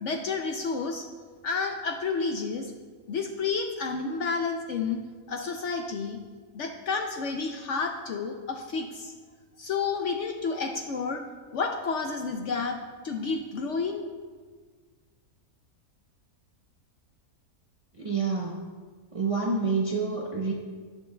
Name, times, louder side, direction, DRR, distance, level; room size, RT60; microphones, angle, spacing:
voice 1, 0.0-1.0 1.4-2.7 3.1-5.0 5.3-6.2 6.5-9.1 9.6-11.2 11.5-12.8 13.0-14.0, left 4 dB, 65° left, 4 dB, 0.8 m, -30 dB
voice 2, 17.9-18.6 19.1-20.5, right 4 dB, 35° right, -2 dB, 0.5 m, -28 dB
17.5 x 6.2 x 2.2 m, 1.5 s
omnidirectional pair, 1.7 m